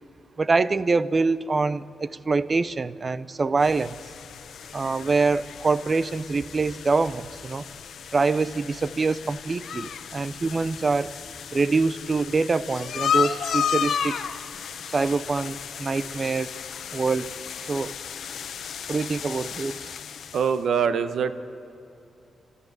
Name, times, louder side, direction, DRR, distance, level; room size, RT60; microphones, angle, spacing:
voice 1, 0.4-4.0 4.7-7.6 8.1-11.2 11.5-14.2 14.9-16.5 16.9-17.3 17.7-17.9 18.9-19.9, right 4 dB, 35° right, 17 dB, 0.6 m, -25 dB
sound 1, 3.6-20.6, left 8 dB, 75° left, 1.0 m, -33 dB
voice 2, 20.3-21.3, right 7 dB, 75° right, 11 dB, 1.1 m, -23 dB
30.0 x 14.0 x 8.0 m, 2.8 s
cardioid pair, 105°, 0 cm